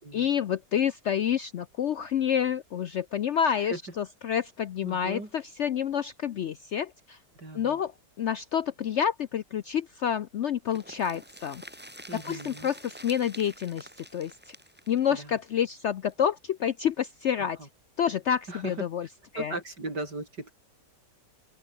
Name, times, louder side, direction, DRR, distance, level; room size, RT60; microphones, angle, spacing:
voice 1, 0.1-7.2 7.5-7.9 8.2-11.6 12.1-14.5 14.9-17.6 18.0-19.1 19.3-19.5, left 8 dB, 65° left, 0.7 m, -28 dB
voice 2, 4.8-5.3 7.4-7.8 12.1-12.7 15.1-15.3 17.6-17.7 18.5-18.7 19.4-20.5, right 2 dB, 80° right, 7.6 m, -37 dB
sound 1, 10.7-16.4 16.7-16.8 17.1-17.2, equal, 5° right, 4.5 m, -48 dB
open air
omnidirectional pair, 1.8 m